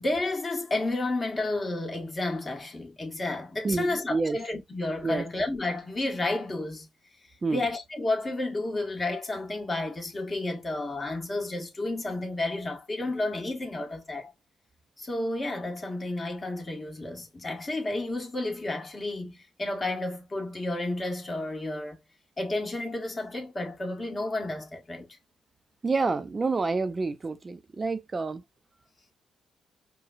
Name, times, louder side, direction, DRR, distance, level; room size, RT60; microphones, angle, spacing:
voice 1, 0.0-6.9 7.5-14.3 15.0-22.0 22.4-25.1, left 2 dB, 30° left, 1.4 m, -31 dB
voice 2, 3.6-4.4 5.0-5.2 7.4-7.6 25.8-28.4, right 3 dB, 35° right, 0.6 m, -28 dB
4.9 x 2.3 x 2.5 m
supercardioid pair, 65°, 0 cm